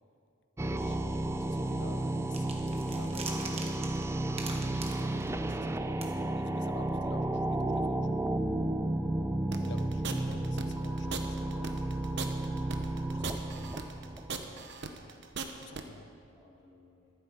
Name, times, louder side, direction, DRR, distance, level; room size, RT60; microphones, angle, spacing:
voice 1, 0.6-2.4 3.0-6.0 6.4-8.2 9.6-12.2 13.1-13.7 15.6-16.1, left 3 dB, 55° left, 11 dB, 0.6 m, -51 dB
sound 1, 0.6-14.7, right 1 dB, 15° right, 0.3 m, -32 dB
sound 2, 2.3-5.7 6.0-6.1, right 4 dB, 30° right, 1.2 m, -42 dB
voice 2, 9.3-9.7 14.1-14.6 15.8-17.0, left 1 dB, 10° left, -10 dB, 1.8 m, -60 dB
sound 3, 9.5-15.8, right 5 dB, 55° right, 0.9 m, -39 dB
14.0 x 12.0 x 4.9 m, 2.4 s
head